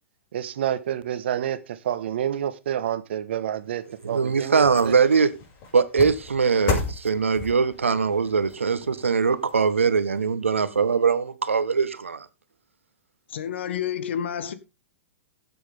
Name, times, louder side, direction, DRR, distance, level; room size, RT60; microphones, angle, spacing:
voice 1, 0.3-4.9, right 10 dB, 60° right, 1.4 m, -29 dB
sound 1, 3.7-10.2 10.6-10.7, left 4 dB, 40° left, 6.1 m, -35 dB
voice 2, 4.0-5.3 5.7-12.3, right 5 dB, 80° right, 1.2 m, -22 dB
voice 3, 13.3-14.5, left 9 dB, 65° left, 1.6 m, -29 dB
16.0 x 7.7 x 3.6 m
hypercardioid pair, 110°, 7 cm